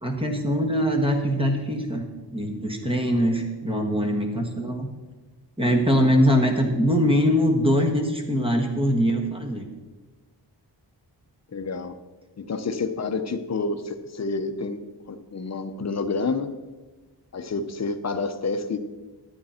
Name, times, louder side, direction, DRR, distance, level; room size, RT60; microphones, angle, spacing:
voice 1, 0.0-2.0 2.3-4.9 5.6-9.7, equal, 10° right, 3 dB, 1.3 m, -22 dB
voice 2, 11.5-12.0 12.4-16.5 17.3-18.8, left 4 dB, 40° left, 7 dB, 0.7 m, -29 dB
12.0 x 8.7 x 4.3 m, 1.2 s
wide cardioid pair, 150°, 43 cm